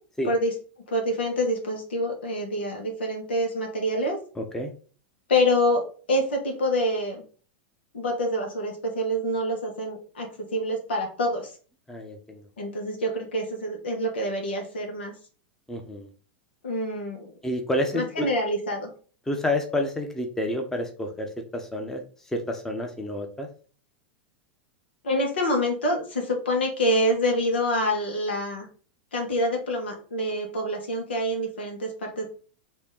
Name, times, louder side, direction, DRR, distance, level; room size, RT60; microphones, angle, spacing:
voice 1, 0.9-4.2 5.3-7.2 7.9-11.5 12.6-15.1 16.6-17.3 17.9-18.9 25.0-28.6 29.1-32.3, equal, 80° left, 2 dB, 1.5 m, -26 dB
voice 2, 4.4-4.7 11.9-12.5 15.7-16.1 17.4-18.3 19.3-23.5, left 1 dB, 10° left, 3 dB, 0.9 m, -29 dB
4.3 x 2.9 x 3.7 m, 0.40 s
hypercardioid pair, 95°, 6 cm